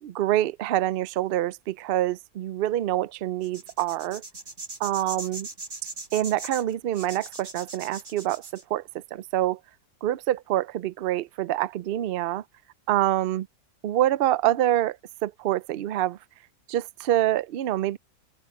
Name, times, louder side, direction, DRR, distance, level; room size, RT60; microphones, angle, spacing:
voice 1, 0.0-4.2 4.8-5.5 6.1-9.6 10.0-12.4 12.9-13.4 13.8-15.0 15.2-16.2 16.7-18.0, right 13 dB, 75° right, 0.5 m, -26 dB
sound 1, 3.4-8.6, right 3 dB, 50° right, 3.4 m, -39 dB
open air
omnidirectional pair, 1.6 m